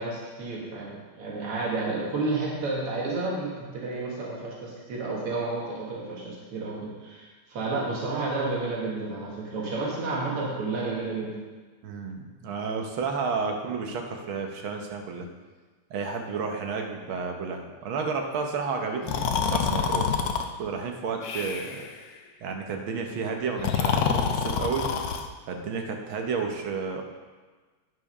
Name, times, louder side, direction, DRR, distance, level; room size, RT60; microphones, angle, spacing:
voice 1, 0.0-11.4, right 3 dB, 85° right, -4 dB, 2.4 m, -31 dB
voice 2, 11.8-15.3 15.9-20.1 20.6-21.9 22.4-24.9 25.5-27.0, right 5 dB, 70° right, 3 dB, 1.8 m, -31 dB
Breathing, 19.0-20.4 21.2-21.9 23.5-25.3, left 7 dB, 80° left, 0.8 m, -27 dB
9.5 x 5.9 x 5.4 m, 1.4 s
omnidirectional pair, 2.4 m